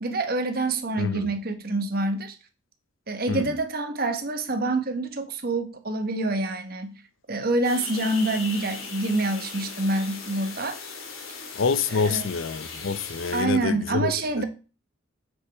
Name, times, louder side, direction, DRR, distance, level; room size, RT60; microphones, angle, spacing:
voice 1, 0.0-2.3 3.1-7.0 7.3-10.8 11.9-12.3 13.3-14.4, right 2 dB, 45° right, 1.2 m, -26 dB
voice 2, 1.0-1.3 3.3-3.5 11.5-14.4, left 5 dB, 70° left, 0.6 m, -27 dB
sound 1, 7.6-13.4, left 5 dB, 85° left, 2.1 m, -38 dB
7.5 x 6.4 x 3.4 m
head